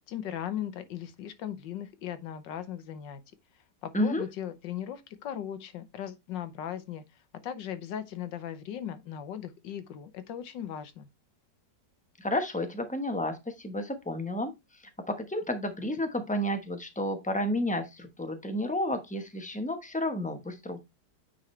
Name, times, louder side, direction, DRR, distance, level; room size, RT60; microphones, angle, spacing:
voice 1, 0.1-3.2 3.8-11.1, left 10 dB, 80° left, 1.6 m, -38 dB
voice 2, 12.2-14.5 15.1-20.8, left 1 dB, 5° left, 0.7 m, -31 dB
9.0 x 4.2 x 3.2 m
omnidirectional pair, 1.9 m